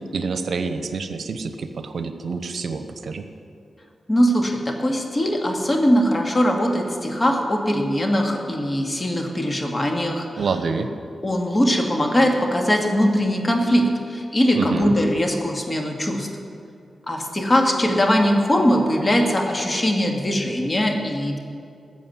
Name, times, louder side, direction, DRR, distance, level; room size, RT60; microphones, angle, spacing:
voice 1, 0.1-3.3 10.4-10.9 14.5-15.0, right 4 dB, 70° right, 8 dB, 0.9 m, -27 dB
voice 2, 4.1-10.3 11.2-16.3 17.1-21.4, equal, 30° left, 2 dB, 2.3 m, -21 dB
14.0 x 7.6 x 9.5 m, 2.5 s
cardioid pair, 50°, 0 cm